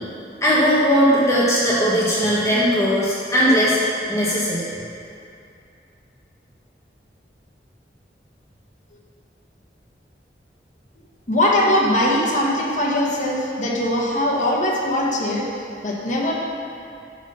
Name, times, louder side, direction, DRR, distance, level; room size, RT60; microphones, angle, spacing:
voice 1, 0.4-3.8 4.1-4.6, equal, 15° left, -8 dB, 1.4 m, -18 dB
voice 2, 11.3-16.3, left 1 dB, 45° left, -4 dB, 1.3 m, -21 dB
11.0 x 4.0 x 5.6 m, 2.6 s
head